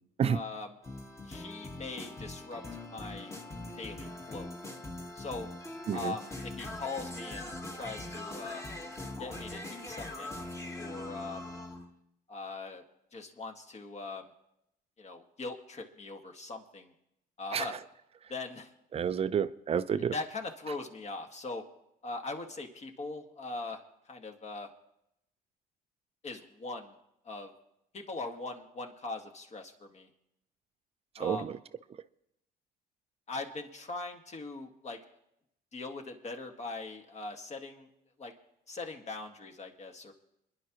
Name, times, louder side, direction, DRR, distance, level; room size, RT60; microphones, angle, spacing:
voice 1, 0.3-0.7 1.2-2.6 2.9-3.3 3.8-4.6 5.2-5.5 5.9-8.6 9.2-10.4 10.8-11.5 12.3-12.8 13.1-14.3 15.0-16.9 17.4-17.8 18.3-18.7 20.1-21.6 22.0-23.8 24.1-24.7 26.2-26.9 27.3-27.5 27.9-30.1 31.2-31.5 33.3-35.0 35.7-37.9 38.2-38.3 38.7-40.1, left 3 dB, 40° left, 3 dB, 2.0 m, -41 dB
sound 1, 0.8-11.9, left 1 dB, 15° left, 1.6 m, -42 dB
voice 2, 18.9-20.1 31.2-31.6, right 7 dB, 35° right, 13 dB, 0.6 m, -30 dB
28.0 x 11.0 x 3.1 m, 0.82 s
cardioid pair, 110°, 17 cm